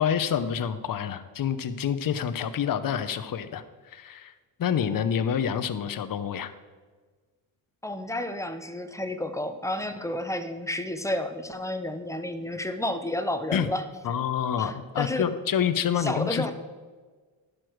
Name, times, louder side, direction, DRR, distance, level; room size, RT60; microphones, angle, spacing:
voice 1, 0.0-4.3 4.6-6.5 13.5-13.7 14.0-16.5, left 8 dB, 45° left, 10 dB, 0.8 m, -27 dB
voice 2, 7.8-13.8 14.6-15.2 16.0-16.5, left 1 dB, 5° left, 8 dB, 0.7 m, -31 dB
11.5 x 6.4 x 4.6 m, 1.4 s
cardioid pair, 85°, 46 cm